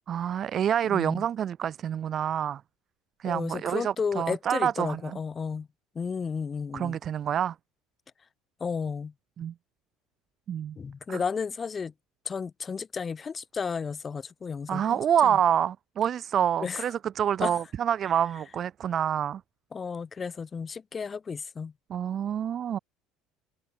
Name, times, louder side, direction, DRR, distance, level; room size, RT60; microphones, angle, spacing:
voice 1, 0.1-2.6 3.2-5.2 6.7-7.5 9.4-9.5 10.5-10.8 11.1-11.2 14.7-19.4 21.9-22.8, right 9 dB, 35° right, 1.4 m, -27 dB
voice 2, 0.8-1.2 3.2-5.7 5.9-7.0 8.6-9.1 10.8-11.9 12.2-15.4 16.6-16.8 17.4-17.5 19.7-21.7, left 5 dB, 20° left, 4.9 m, -33 dB
cardioid pair, 150°, 0 cm